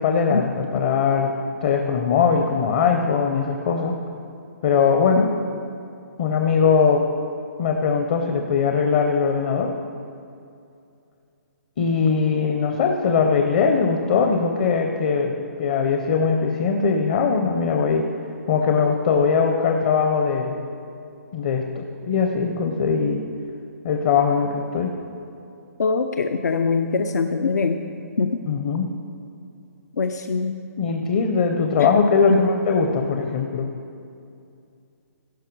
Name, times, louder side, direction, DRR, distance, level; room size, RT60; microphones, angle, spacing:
voice 1, 0.0-1.3 1.6-4.0 4.6-5.4 6.2-7.0 7.6-9.7 11.8-18.1 18.5-20.6 21.3-23.2 23.8-24.9 28.5-28.9 30.8-33.7, left 5 dB, 30° left, 3 dB, 0.6 m, -21 dB
voice 2, 25.8-27.8 28.2-28.4 30.0-30.6 31.8-31.9 32.3-32.4, left 4 dB, 80° left, 7 dB, 0.6 m, -23 dB
16.5 x 5.6 x 4.6 m, 2.5 s
hypercardioid pair, 170°, 9 cm